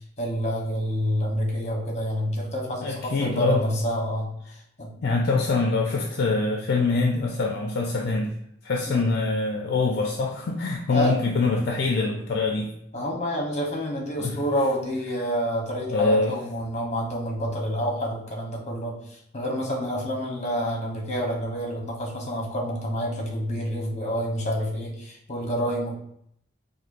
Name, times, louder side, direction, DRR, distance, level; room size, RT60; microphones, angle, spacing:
voice 1, 0.2-4.3 4.8-4.9 8.9-9.1 10.9-11.1 12.9-26.0, equal, 35° left, -1 dB, 1.0 m, -28 dB
voice 2, 2.8-3.7 5.0-8.4 8.6-12.7 14.2-14.4 15.9-16.4, left 3 dB, 55° left, 0 dB, 0.4 m, -24 dB
4.3 x 2.6 x 2.5 m, 0.71 s
head